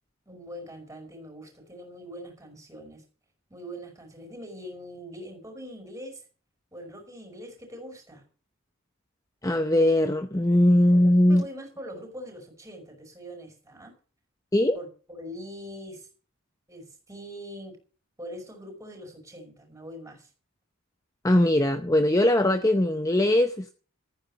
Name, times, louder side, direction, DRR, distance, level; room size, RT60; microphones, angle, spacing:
voice 1, 0.3-3.0 3.5-6.2 6.7-8.2 10.9-13.9 14.7-16.1 16.7-17.8 18.2-20.3, equal, 15° right, 5.5 m, -42 dB
voice 2, 9.4-11.4 14.5-14.8 21.2-23.7, left 1 dB, 15° left, 0.7 m, -20 dB
14.5 x 9.6 x 7.3 m
head